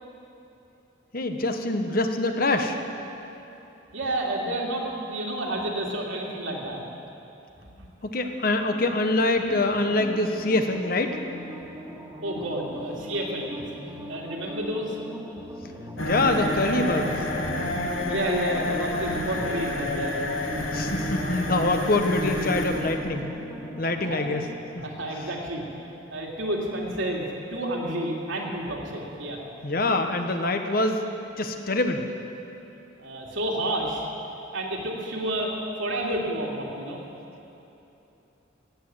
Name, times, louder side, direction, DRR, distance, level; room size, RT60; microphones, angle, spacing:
voice 1, 1.1-2.8 8.0-11.2 16.0-17.2 20.7-23.3 23.8-24.4 24.7-24.8 29.6-31.0 31.4-32.1, left 2 dB, 45° left, 6 dB, 1.0 m, -25 dB
voice 2, 3.9-6.8 7.8-7.9 12.2-13.6 14.1-15.0 18.1-20.5 24.0-24.2 24.8-25.6 26.1-29.4 33.0-34.0 34.5-35.5 35.8-37.0, right 1 dB, 80° right, -2 dB, 2.5 m, -30 dB
sound 1, 8.6-24.6, equal, 10° right, 1.7 m, -40 dB
sound 2, 16.0-25.6, left 1 dB, 85° left, 1.7 m, -30 dB
16.5 x 9.4 x 7.6 m, 2.9 s
head